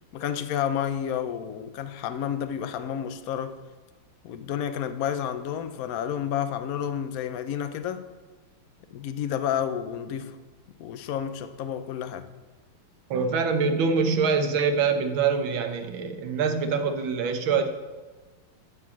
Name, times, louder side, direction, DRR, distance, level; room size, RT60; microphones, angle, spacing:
voice 1, 0.1-3.6 4.2-8.1 8.9-10.4 10.8-12.3, left 9 dB, 75° left, 0.8 m, -30 dB
voice 2, 13.1-17.7, right 5 dB, 70° right, 1.7 m, -24 dB
14.0 x 4.8 x 7.2 m
omnidirectional pair, 2.3 m